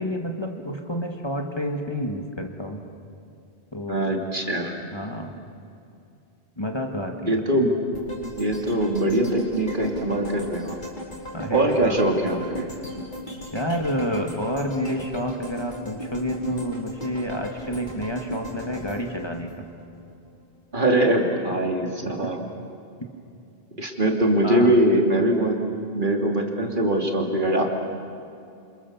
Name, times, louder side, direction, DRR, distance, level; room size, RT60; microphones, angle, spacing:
voice 1, 0.0-2.8 3.7-4.1 4.9-5.3 6.6-7.3 11.3-12.0 13.5-19.6 22.0-22.3 24.4-24.8, equal, 25° left, 2 dB, 1.8 m, -29 dB
voice 2, 3.9-4.7 7.3-7.7 8.2-10.8 11.5-12.7 20.7-22.4 23.8-25.6 25.9-27.6, right 1 dB, 50° right, 1 dB, 3.0 m, -22 dB
sound 1, 7.9-20.1 20.5-20.6, left 1 dB, 45° left, 4.9 m, -37 dB
28.0 x 27.5 x 7.3 m, 2.6 s
omnidirectional pair, 1.1 m